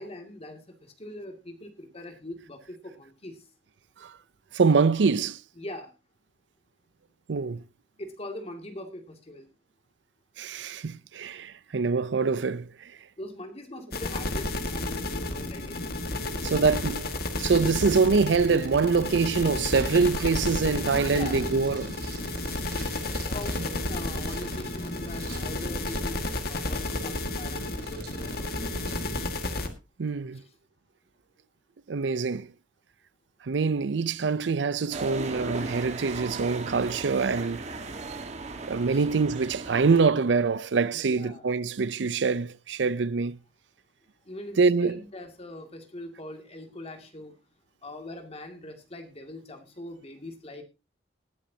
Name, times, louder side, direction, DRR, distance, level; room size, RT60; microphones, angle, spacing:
voice 1, 0.0-3.4 5.6-5.9 8.0-9.5 13.2-15.9 16.3-16.8 21.1-21.5 23.3-29.4 30.3-30.4 38.9-39.1 40.9-41.4 44.3-47.4 47.8-50.6, left 1 dB, 35° left, 2.3 m, -42 dB
voice 2, 4.5-5.4 7.3-7.6 10.4-12.9 16.5-17.0 17.4-22.0 30.0-30.4 31.9-32.5 33.4-37.6 38.7-43.4 44.6-45.0, right 4 dB, 85° right, 0.5 m, -25 dB
sound 1, 13.9-29.7, left 2 dB, 60° left, 1.8 m, -32 dB
sound 2, 19.6-29.0, right 2 dB, 60° right, 3.5 m, -45 dB
sound 3, 34.9-40.0, right 3 dB, 40° right, 1.6 m, -37 dB
19.5 x 10.0 x 2.8 m
head